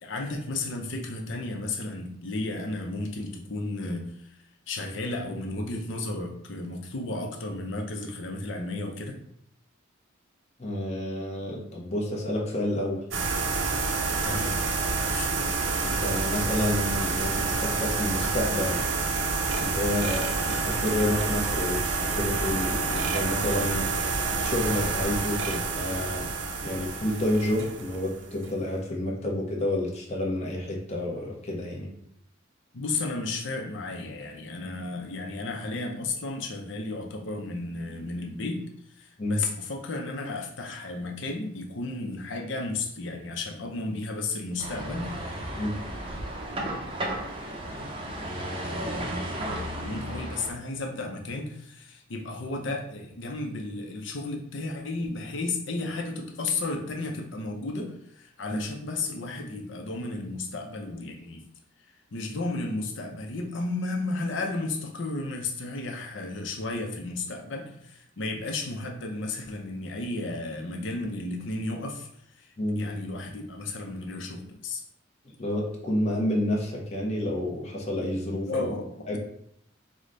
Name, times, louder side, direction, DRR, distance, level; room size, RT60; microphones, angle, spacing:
voice 1, 0.0-9.2 14.2-14.6 15.1-15.3 32.7-45.4 49.7-61.4 62.1-74.8 78.5-79.2, left 2 dB, 65° left, 2 dB, 0.6 m, -33 dB
voice 2, 10.6-13.0 15.4-18.8 19.6-23.8 24.4-26.3 26.6-31.9 39.2-39.4 45.6-45.8 48.2-49.3 58.5-58.6 72.6-72.8 75.4-78.7 79.1-79.2, left 1 dB, 30° left, -3 dB, 0.8 m, -30 dB
sound 1, 13.1-28.5, right 4 dB, 75° right, 0.6 m, -28 dB
sound 2, 44.6-50.5, right 1 dB, 25° right, 0.5 m, -34 dB
4.9 x 2.1 x 3.8 m, 0.70 s
head